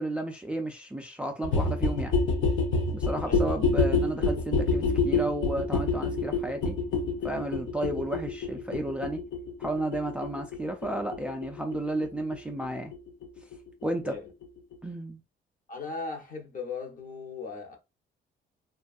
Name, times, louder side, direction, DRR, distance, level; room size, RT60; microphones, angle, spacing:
voice 1, 0.0-2.1 2.9-6.8 7.2-9.2 9.6-12.9 13.8-14.2 14.8-15.2, right 1 dB, 5° right, 0.3 m, -32 dB
sound 1, 1.4-13.0 13.2-13.3 13.5-13.6 13.8-13.9 14.1-14.2 14.4-14.5 14.7-14.8, left 3 dB, 70° left, 0.6 m, -28 dB
voice 2, 15.7-17.8, left 4 dB, 45° left, 0.8 m, -37 dB
2.5 x 2.3 x 2.3 m
cardioid pair, 90°, 20 cm